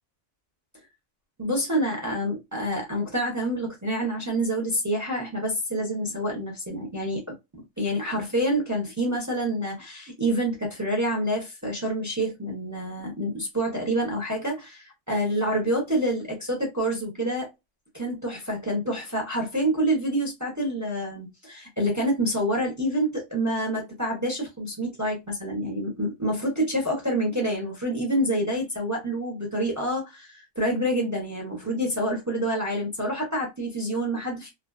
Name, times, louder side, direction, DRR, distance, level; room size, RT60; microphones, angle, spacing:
voice 1, 1.4-17.5 17.9-34.5, right 1 dB, 20° right, 0.5 m, -27 dB
2.5 x 2.2 x 2.2 m
omnidirectional pair, 1.3 m